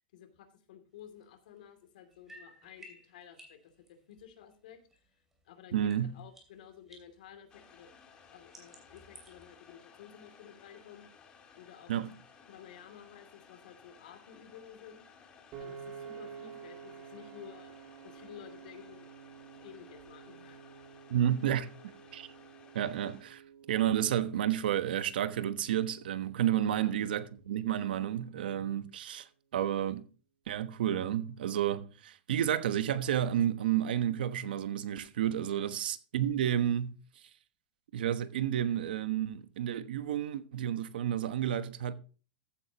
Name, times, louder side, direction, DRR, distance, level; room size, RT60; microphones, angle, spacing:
voice 1, 0.1-5.1 5.4-7.9 8.3-11.1 11.6-11.9 12.5-15.1 15.6-17.7 18.0-19.1 19.6-20.7 26.7-26.9 35.5-35.7, left 9 dB, 65° left, 2.7 m, -53 dB
sound 1, 1.0-5.4 5.7-9.5, equal, 5° right, 2.8 m, -58 dB
voice 2, 5.7-6.2 11.9-12.1 21.1-21.7 22.1-22.3 22.7-23.4 23.7-30.1 30.5-37.0 37.9-41.9, right 10 dB, 80° right, 1.1 m, -31 dB
sound 2, 7.5-23.2, left 6 dB, 20° left, 1.7 m, -58 dB
Piano, 15.5-27.8, right 7 dB, 30° right, 2.3 m, -51 dB
14.5 x 9.0 x 2.9 m
supercardioid pair, 170°, 5 cm